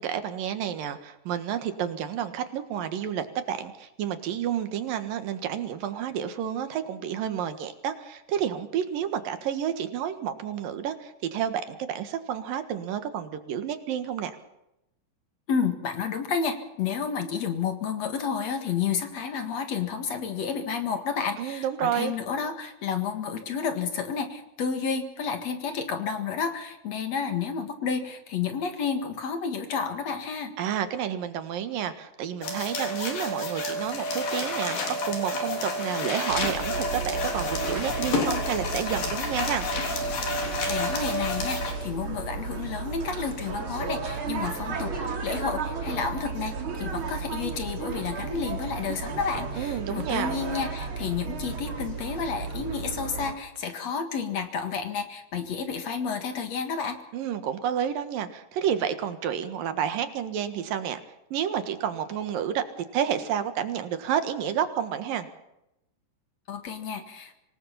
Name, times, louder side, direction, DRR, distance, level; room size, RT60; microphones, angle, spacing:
voice 1, 0.0-14.4 21.4-22.2 30.6-39.6 49.6-50.4 57.1-61.0 61.3-62.6 62.9-65.3, right 9 dB, 85° right, 9 dB, 3.3 m, -30 dB
voice 2, 15.5-30.5 40.7-44.9 45.2-57.0 66.5-67.3, left 6 dB, 55° left, 7 dB, 2.7 m, -31 dB
sound 1, 32.4-41.7, left 2 dB, 80° left, 5.2 m, -30 dB
sound 2, 36.3-53.3, right 4 dB, 40° right, 2.9 m, -34 dB
26.0 x 18.5 x 5.7 m, 0.85 s
omnidirectional pair, 3.9 m